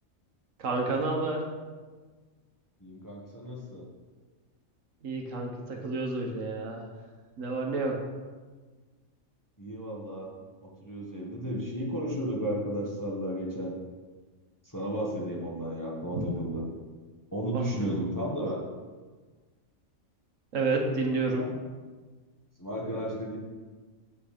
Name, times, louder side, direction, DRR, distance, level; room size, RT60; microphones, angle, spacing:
voice 1, 0.6-1.4 5.0-6.9 7.4-8.0 16.1-16.3 17.5-17.9 20.5-21.5, right 3 dB, 65° right, 1 dB, 1.4 m, -30 dB
voice 2, 2.8-3.9 9.6-10.3 10.6-13.7 14.6-16.6 17.3-18.6 22.6-23.4, equal, 15° left, -4 dB, 1.2 m, -33 dB
7.6 x 6.0 x 5.0 m, 1.4 s
omnidirectional pair, 1.5 m